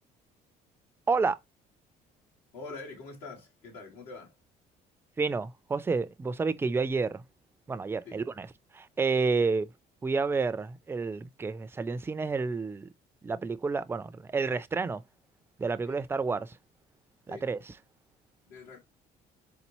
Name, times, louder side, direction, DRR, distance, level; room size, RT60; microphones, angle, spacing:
voice 1, 1.1-1.4 5.2-7.2 7.7-8.5 8.7-9.7 10.0-12.9 13.2-15.0 15.6-16.6 17.3-17.6, right 4 dB, 15° right, 0.4 m, -30 dB
voice 2, 2.5-4.4 8.0-8.2 9.4-9.5 15.8-16.0 17.3-17.5 18.4-18.8, left 3 dB, 90° left, 2.5 m, -45 dB
4.1 x 3.8 x 3.0 m
cardioid pair, 110°, 17 cm